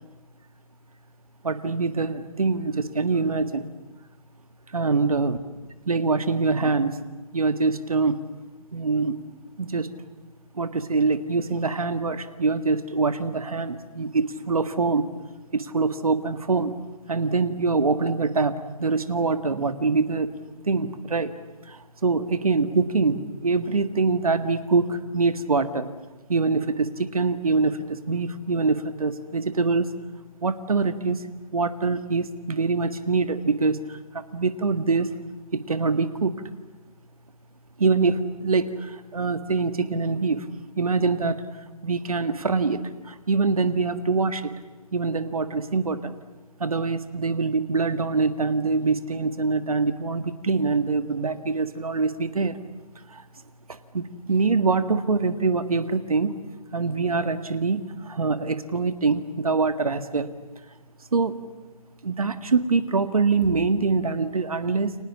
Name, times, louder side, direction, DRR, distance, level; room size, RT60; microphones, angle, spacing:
voice 1, 1.4-3.7 4.7-5.4 5.9-7.0 7.3-8.2 8.7-9.2 9.6-9.9 10.6-15.1 15.5-16.7 17.1-20.3 20.7-21.3 21.7-25.9 26.3-29.9 30.4-31.2 31.5-35.1 35.5-36.4 37.8-40.5 40.8-41.4 41.8-44.5 44.9-46.2 46.6-52.6 53.1-53.2 53.7-56.4 56.7-60.3 61.1-61.4 62.0-65.0, right 4 dB, 70° right, 10 dB, 1.8 m, -24 dB
29.5 x 24.5 x 7.3 m, 1.2 s
figure-of-eight pair, 145°, 19 cm